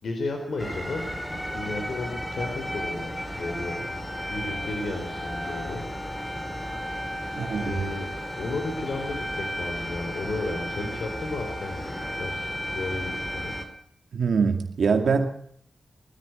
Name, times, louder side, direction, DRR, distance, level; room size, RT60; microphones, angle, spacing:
voice 1, 0.0-3.8 4.3-5.8 7.0-7.2 7.6-8.1 8.4-11.8 12.1-12.5 12.7-13.5, left 2 dB, 75° left, 4 dB, 4.1 m, -33 dB
sound 1, 0.6-13.7, equal, 10° left, 4.0 m, -33 dB
voice 2, 7.4-7.8 14.1-15.3, right 5 dB, 80° right, 5 dB, 2.3 m, -23 dB
20.0 x 14.5 x 9.2 m, 0.66 s
wide cardioid pair, 100°, 0 cm